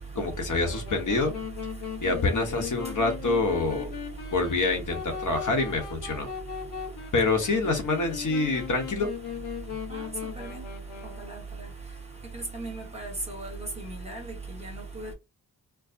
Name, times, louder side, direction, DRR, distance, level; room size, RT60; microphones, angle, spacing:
voice 1, 0.1-1.3 2.0-3.9 4.3-6.3 7.1-9.1, left 3 dB, 55° left, 1.0 m, -26 dB
Wind instrument woodwind instrument, 0.6-11.5, left 8 dB, 85° left, 1.0 m, -38 dB
voice 2, 12.3-13.5 14.1-14.3 14.9-15.1, right 2 dB, 15° right, 1.1 m, -36 dB
4.6 x 2.1 x 2.6 m
wide cardioid pair, 165°, 38 cm